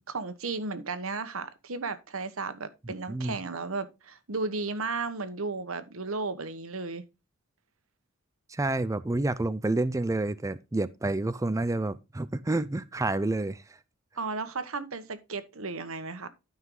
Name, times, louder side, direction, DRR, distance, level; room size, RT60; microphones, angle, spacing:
voice 1, 0.1-7.0 14.2-16.3, right 3 dB, 70° right, 1.2 m, -34 dB
voice 2, 8.5-13.6, right 2 dB, 15° right, 0.4 m, -29 dB
12.5 x 5.6 x 3.8 m
head